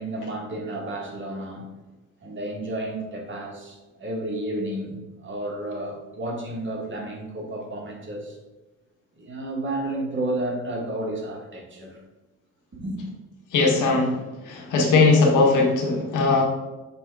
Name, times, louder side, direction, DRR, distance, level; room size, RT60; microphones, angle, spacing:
voice 1, 0.0-1.7 2.2-8.4 9.2-12.0 12.7-13.0, right 1 dB, 40° right, -1 dB, 1.8 m, -31 dB
voice 2, 13.5-16.4, left 3 dB, 85° left, 0 dB, 1.6 m, -19 dB
6.1 x 3.6 x 4.8 m, 1.1 s
cardioid pair, 90°, 30 cm